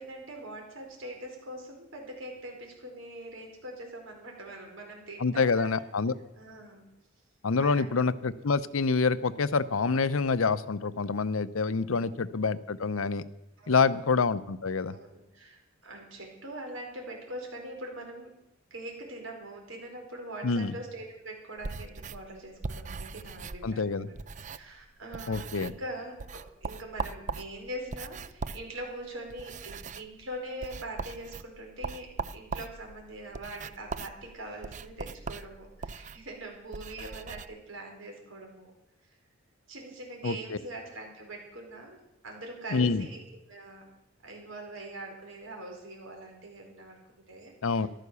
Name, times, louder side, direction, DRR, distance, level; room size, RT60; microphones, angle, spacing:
voice 1, 0.0-5.8 6.4-6.8 7.6-7.9 11.7-12.1 13.6-14.0 14.9-18.3 18.7-38.7 39.7-42.0 42.2-43.2 43.5-43.8 44.2-47.0 47.3-47.9, right 1 dB, 70° right, 1 dB, 4.7 m, -43 dB
voice 2, 5.2-6.1 7.4-13.2 13.7-15.0 20.4-20.7 23.6-24.1 25.3-25.7 40.2-40.6 42.7-43.1 47.6-47.9, left 4 dB, 85° left, 15 dB, 0.7 m, -27 dB
sound 1, 21.6-24.8 25.1-25.9 26.2-37.5, right 4 dB, 35° right, 0.5 m, -40 dB
14.5 x 12.5 x 6.9 m, 0.87 s
head